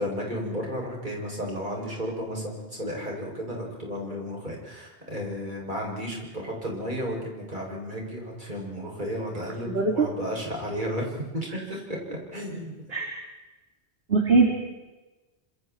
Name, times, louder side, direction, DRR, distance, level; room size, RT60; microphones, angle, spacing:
voice 1, 0.0-12.0 12.3-12.7, equal, 45° right, -2 dB, 7.8 m, -33 dB
voice 2, 9.6-10.1 12.9-13.1 14.1-14.5, right 3 dB, 60° right, 1 dB, 3.2 m, -21 dB
27.5 x 27.0 x 4.7 m, 1.1 s
omnidirectional pair, 1.1 m